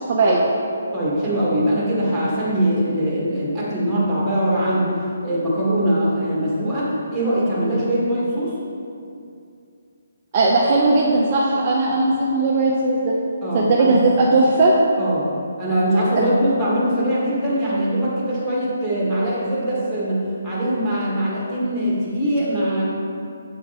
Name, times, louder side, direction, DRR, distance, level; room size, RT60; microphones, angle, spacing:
voice 1, 0.1-0.4 10.3-13.2 13.5-14.7, right 2 dB, 30° right, -4 dB, 0.6 m, -17 dB
voice 2, 0.9-4.9 5.2-8.6 13.4-14.1 15.0-15.3 15.6-20.2 20.4-22.8, right 1 dB, 5° right, -10 dB, 1.6 m, -22 dB
7.5 x 4.7 x 4.1 m, 2.5 s
hypercardioid pair, 165°, 0 cm